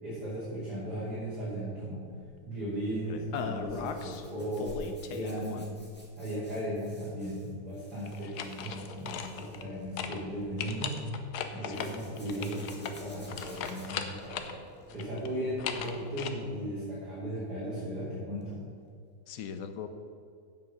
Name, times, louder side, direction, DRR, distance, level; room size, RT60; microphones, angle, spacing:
voice 1, 0.0-2.0 2.4-5.7 6.2-11.0 11.5-14.5 14.9-18.6, equal, 80° right, -10 dB, 3.5 m, -36 dB
sound 1, 3.3-4.2 4.6-5.9 8.1-9.7 10.0-10.2 10.6-14.6 14.9-16.3, left 7 dB, 85° left, 1.3 m, -38 dB
Zipper (clothing), 3.3-10.8 11.7-15.4 15.7-16.1 18.4-18.6 18.8-18.9, equal, 5° left, 1.9 m, -57 dB
sound 2, 8.4-16.7, right 1 dB, 10° right, 0.4 m, -53 dB
voice 2, 19.3-19.9, left 8 dB, 65° left, 8 dB, 1.2 m, -40 dB
8.1 x 7.6 x 7.0 m, 2.3 s
omnidirectional pair, 1.7 m